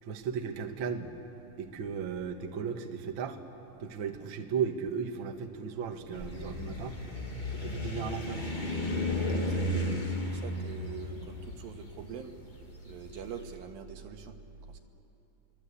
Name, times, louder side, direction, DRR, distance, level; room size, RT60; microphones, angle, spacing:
voice 1, 0.0-1.1 1.6-3.4 3.8-6.9 7.5-8.6, right 6 dB, 55° right, 4 dB, 1.5 m, -35 dB
sound 1, 6.1-13.2, left 1 dB, 40° left, 0.6 m, -34 dB
voice 2, 9.4-12.3 12.9-14.4 14.7-14.8, right 7 dB, 80° right, 5 dB, 3.1 m, -44 dB
28.5 x 24.0 x 8.4 m, 3.0 s
omnidirectional pair, 4.1 m